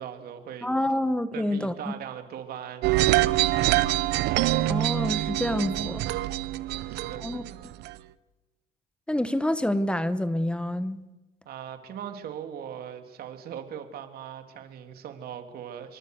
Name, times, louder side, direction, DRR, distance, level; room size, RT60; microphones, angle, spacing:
voice 1, 0.0-0.7 1.3-3.8 6.5-7.6 11.4-16.0, right 9 dB, 65° right, 3.2 m, -40 dB
voice 2, 0.6-1.9 4.7-6.1 7.2-7.7 9.1-11.0, left 1 dB, 5° left, 1.3 m, -28 dB
sound 1, 2.8-7.9, right 16 dB, 85° right, 0.9 m, -25 dB
27.0 x 23.5 x 6.6 m
cardioid pair, 110°, 17 cm